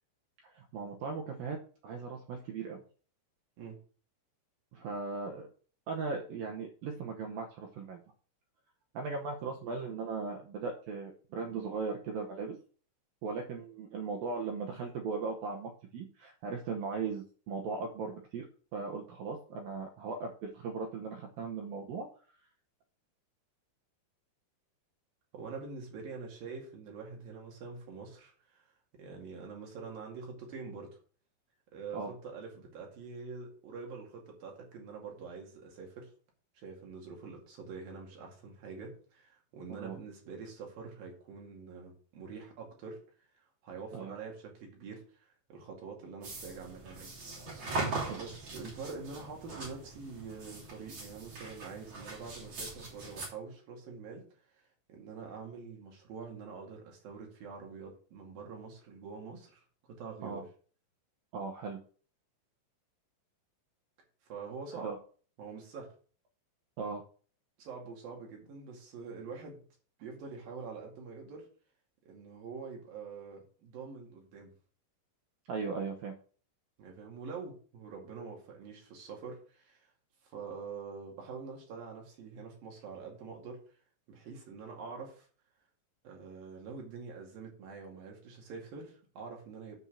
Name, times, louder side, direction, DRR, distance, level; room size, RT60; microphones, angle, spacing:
voice 1, 0.4-1.6 1.8-2.8 4.7-5.5 5.9-8.0 8.9-12.6 13.2-18.5 18.7-22.1 31.9-32.1 39.8-40.0 43.9-44.1 48.1-48.2 60.2-60.4 61.3-61.8 64.8-65.0 66.8-67.0 75.5-76.1, right 4 dB, 75° right, 1 dB, 2.2 m, -38 dB
voice 2, 25.3-28.6 28.9-31.0 31.7-36.1 36.6-43.0 43.6-47.1 48.1-54.2 54.6-54.7 54.9-59.6 59.9-60.5 64.3-64.9 65.4-65.9 67.6-69.6 70.0-71.5 72.1-74.5 76.8-79.9 80.2-83.6 84.1-85.3 86.0-89.8, right 5 dB, 55° right, 0 dB, 3.8 m, -45 dB
sound 1, 46.2-53.3, right 3 dB, 35° right, 3.6 m, -41 dB
9.7 x 4.5 x 7.2 m, 0.42 s
omnidirectional pair, 5.3 m